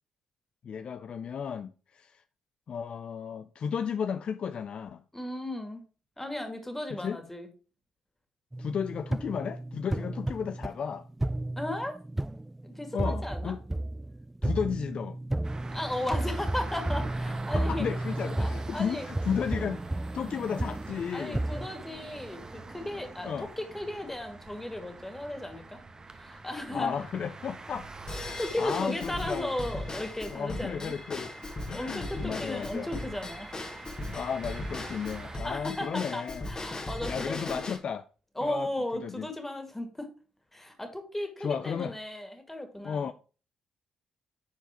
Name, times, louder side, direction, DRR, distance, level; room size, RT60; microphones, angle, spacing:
voice 1, 0.6-2.2 2.7-5.0 6.9-7.2 8.6-11.1 12.9-13.6 14.4-15.2 17.5-19.8 20.1-21.4 23.2-23.5 26.7-27.9 28.2-29.5 30.3-31.3 31.7-32.9 34.1-36.5 37.0-38.1 38.4-39.3 41.4-42.0 42.8-43.1, left 7 dB, 55° left, 0.4 m, -34 dB
voice 2, 5.1-5.8 6.2-7.5 11.6-12.0 12.6-13.5 15.7-17.9 18.4-19.1 21.1-25.8 26.2-27.0 28.4-30.9 31.7-33.6 35.4-37.6 38.4-40.1 40.5-43.1, left 1 dB, 10° left, 2.5 m, -35 dB
sound 1, 8.5-21.7, right 1 dB, 10° right, 0.3 m, -33 dB
sound 2, 15.4-35.4, right 3 dB, 30° right, 1.2 m, -45 dB
Drum kit / Drum / Bell, 28.1-37.8, left 2 dB, 35° left, 2.0 m, -38 dB
10.5 x 4.6 x 3.8 m
hypercardioid pair, 50°, 2 cm